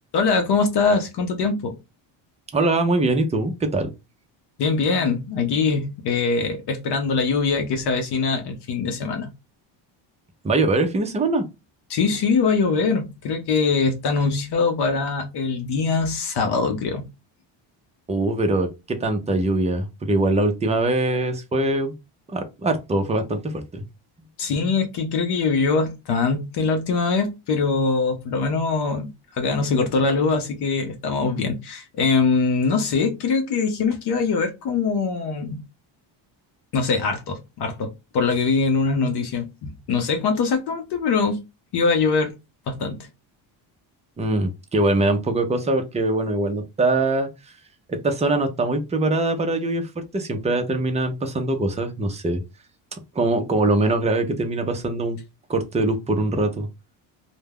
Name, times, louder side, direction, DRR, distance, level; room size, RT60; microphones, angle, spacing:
voice 1, 0.1-1.8 4.6-9.3 11.9-17.1 24.4-35.6 36.7-41.4 41.7-42.3 42.7-43.0, left 4 dB, 55° left, 0.7 m, -22 dB
voice 2, 2.5-3.9 10.4-11.4 18.1-21.9 22.3-23.8 44.2-47.3 47.9-52.4 53.1-55.2 55.5-56.7, right 2 dB, 15° right, 0.5 m, -22 dB
2.2 x 2.1 x 3.3 m
cardioid pair, 115°, 48 cm